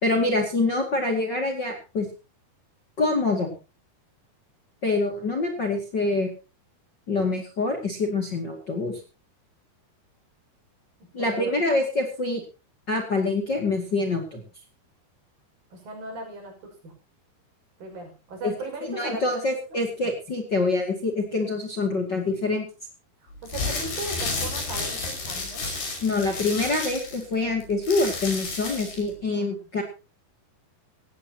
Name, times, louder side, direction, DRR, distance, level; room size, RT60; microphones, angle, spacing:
voice 1, 0.0-2.1 3.0-3.5 4.8-6.3 7.1-9.0 11.1-12.4 12.9-14.4 18.4-18.5 18.8-22.7 26.0-29.8, left 3 dB, 30° left, 4 dB, 2.4 m, -25 dB
voice 2, 11.2-11.5 15.7-16.5 16.8-16.9 17.8-19.4 23.2-25.7 29.4-29.5, right 2 dB, 60° right, 2 dB, 7.5 m, -37 dB
sound 1, 23.4-29.1, left 3 dB, 70° left, 7.4 m, -31 dB
18.5 x 15.5 x 2.9 m, 0.32 s
omnidirectional pair, 4.6 m